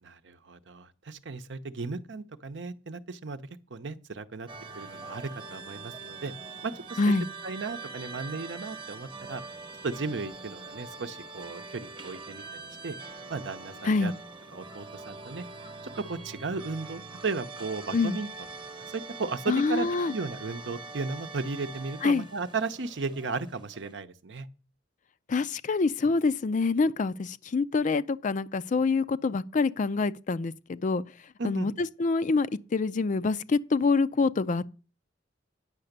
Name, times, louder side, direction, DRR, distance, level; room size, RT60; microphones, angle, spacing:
voice 1, 0.0-3.4 3.7-4.5 4.7-6.3 6.6-7.0 7.4-9.4 9.8-13.0 13.3-14.1 14.5-15.4 16.0-18.3 18.7-24.5 31.4-31.7, right 4 dB, 65° right, 0.7 m, -35 dB
sound 1, 4.5-23.9, right 3 dB, 25° right, 1.0 m, -43 dB
voice 2, 7.0-7.3 13.8-14.1 17.9-18.2 19.5-20.1 22.0-22.2 25.3-31.0 31.4-34.7, left 4 dB, 40° left, 0.4 m, -26 dB
9.7 x 5.9 x 6.6 m
head